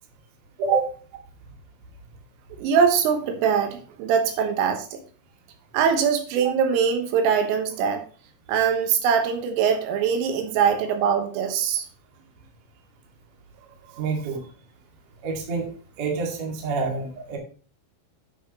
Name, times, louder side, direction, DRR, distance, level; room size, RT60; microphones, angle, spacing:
voice 1, 2.6-5.0 5.7-8.0 8.5-11.9 13.9-14.0, right 7 dB, 85° right, 6 dB, 3.8 m, -22 dB
voice 2, 14.0-14.4 15.2-15.7 16.0-17.4, right 4 dB, 45° right, 1 dB, 2.5 m, -27 dB
11.0 x 6.7 x 3.0 m, 0.40 s
omnidirectional pair, 5.8 m